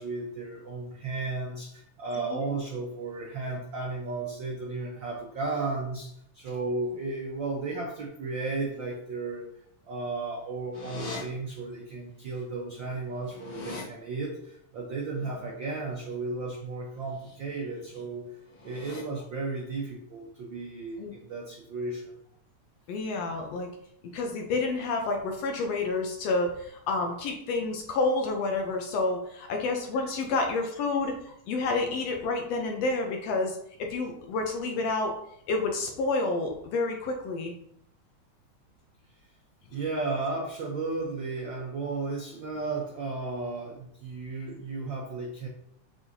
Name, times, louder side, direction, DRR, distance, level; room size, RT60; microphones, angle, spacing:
voice 1, 0.0-9.5 9.9-18.2 18.6-22.1 39.7-45.5, right 3 dB, 75° right, -1 dB, 1.1 m, -34 dB
sound 1, 10.7-11.2 12.4-12.5 12.8-13.8 17.0-17.3 17.7-18.0 18.5-19.0, left 3 dB, 45° left, 2.1 m, -41 dB
voice 2, 22.9-23.7 24.1-35.1 35.5-37.5, left 3 dB, 75° left, 3 dB, 1.6 m, -29 dB
6.3 x 5.5 x 2.7 m, 0.71 s
omnidirectional pair, 3.4 m